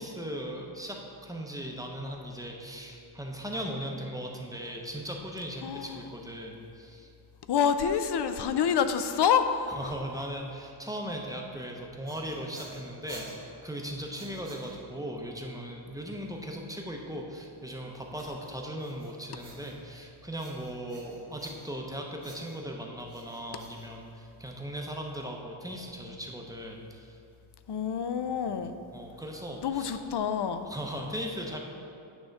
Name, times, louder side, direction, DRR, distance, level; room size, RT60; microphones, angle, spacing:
voice 1, 0.0-7.1 9.7-27.2 28.3-28.5 28.9-29.9 30.6-31.6, equal, 5° right, 0 dB, 0.6 m, -38 dB
voice 2, 5.6-6.0 7.5-9.9 27.7-28.8 29.6-30.7, left 7 dB, 55° left, 9 dB, 0.5 m, -27 dB
sound 1, 11.8-15.1 18.2-20.0 20.4-21.9 22.2-24.5, right 2 dB, 75° right, 1.8 m, -50 dB
8.9 x 3.5 x 6.4 m, 2.6 s
wide cardioid pair, 155°, 48 cm